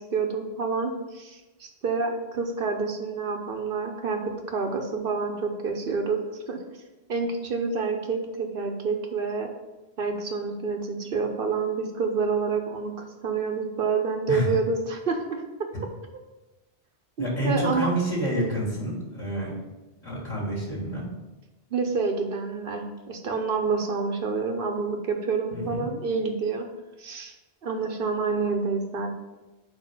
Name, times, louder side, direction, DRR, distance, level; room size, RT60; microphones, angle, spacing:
voice 1, 0.0-6.2 6.5-6.6 7.1-9.5 10.0-15.4 17.2-17.9 21.7-26.7 27.0-27.3 27.6-29.1, right 4 dB, 55° right, 4 dB, 0.9 m, -28 dB
voice 2, 17.2-19.5 20.0-21.1 25.5-25.9, right 1 dB, 25° left, -6 dB, 1.5 m, -28 dB
4.7 x 4.5 x 5.9 m, 1.1 s
omnidirectional pair, 1.2 m